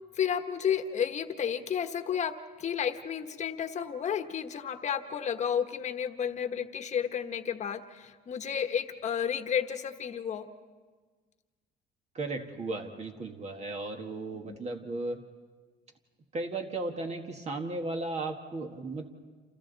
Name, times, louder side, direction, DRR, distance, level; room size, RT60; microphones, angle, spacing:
voice 1, 0.1-10.5 14.5-14.6, left 8 dB, 45° left, 7 dB, 1.3 m, -32 dB
voice 2, 12.1-15.2 16.3-19.1, right 2 dB, 40° right, 3 dB, 1.7 m, -35 dB
29.0 x 28.0 x 4.1 m, 1.4 s
cardioid pair, 110°, 17 cm